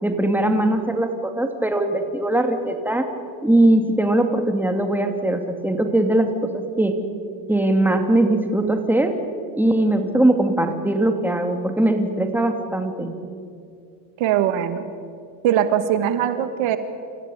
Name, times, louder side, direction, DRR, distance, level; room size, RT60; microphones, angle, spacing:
voice 1, 0.0-3.1 3.4-6.9 7.5-9.2 9.5-13.1, right 1 dB, 5° right, 5 dB, 2.5 m, -20 dB
voice 2, 14.2-14.8 15.4-16.8, right 10 dB, 65° right, 10 dB, 1.7 m, -21 dB
28.0 x 15.0 x 9.4 m, 2.3 s
supercardioid pair, 105°, 50 cm